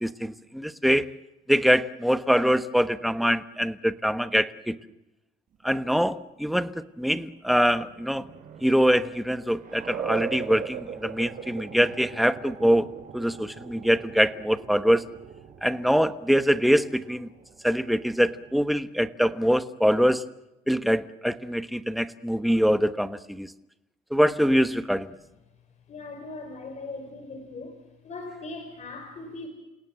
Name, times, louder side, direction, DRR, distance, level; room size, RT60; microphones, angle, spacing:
voice 1, 0.0-1.1 1.5-4.8 5.6-6.7 7.0-8.3 8.6-15.0 15.6-17.3 17.6-20.2 20.7-23.5 24.1-25.1, equal, ahead, 11 dB, 1.2 m, -24 dB
sound 1, 7.2-18.6, right 7 dB, 55° right, 4.9 m, -40 dB
voice 2, 25.9-27.8 28.0-29.5, left 3 dB, 45° left, 6 dB, 4.8 m, -39 dB
29.0 x 17.5 x 7.8 m, 0.97 s
cardioid pair, 110°, 17 cm